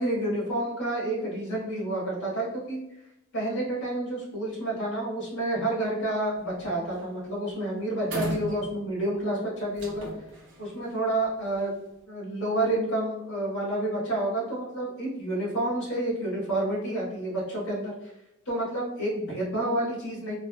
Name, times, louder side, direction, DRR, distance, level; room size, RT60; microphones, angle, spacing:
voice 1, 0.0-2.8 3.3-10.1 10.6-11.7 12.1-18.1 18.4-20.4, right 1 dB, 75° left, -7 dB, 1.4 m, -29 dB
sound 1, 6.3-6.6 6.9-7.2 7.5-7.6 8.0-9.1 9.7-11.8, right 2 dB, 55° right, 0.6 m, -37 dB
3.3 x 2.2 x 2.2 m, 0.86 s
head